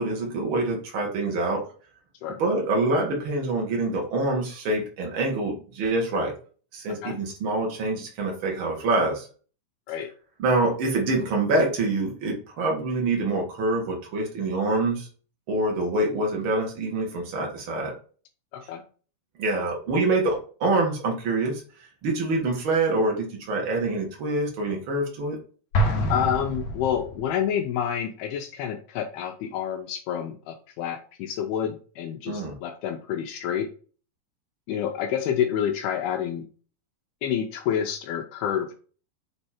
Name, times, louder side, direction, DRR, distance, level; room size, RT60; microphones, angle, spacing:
voice 1, 0.0-1.6 2.4-6.3 6.7-9.3 10.4-15.1 15.5-17.9 19.4-21.6 22.0-25.4 32.3-32.6, right 2 dB, 45° right, 0 dB, 1.9 m, -25 dB
Explosion, 25.7-27.4, right 1 dB, 65° left, 2.0 m, -26 dB
voice 2, 26.1-33.7 34.7-36.4 37.2-38.7, left 9 dB, 85° left, 2 dB, 2.6 m, -28 dB
7.1 x 3.3 x 4.3 m, 0.40 s
omnidirectional pair, 4.5 m